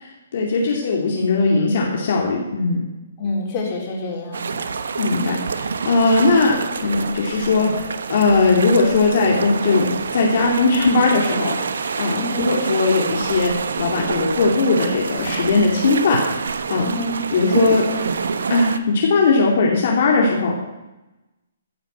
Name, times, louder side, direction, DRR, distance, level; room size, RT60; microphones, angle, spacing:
voice 1, 0.3-2.8 5.0-11.5 12.0-13.5 13.8-16.2 16.7-16.8 17.3-17.8 18.5-20.5, left 3 dB, 55° left, -2 dB, 2.5 m, -19 dB
voice 2, 3.2-4.7 12.1-12.5 16.8-17.1, left 2 dB, 30° left, -2 dB, 3.9 m, -28 dB
sound 1, 4.3-18.8, right 5 dB, 75° right, 1.0 m, -26 dB
15.0 x 5.7 x 7.8 m, 1.0 s
hypercardioid pair, 155°, 0 cm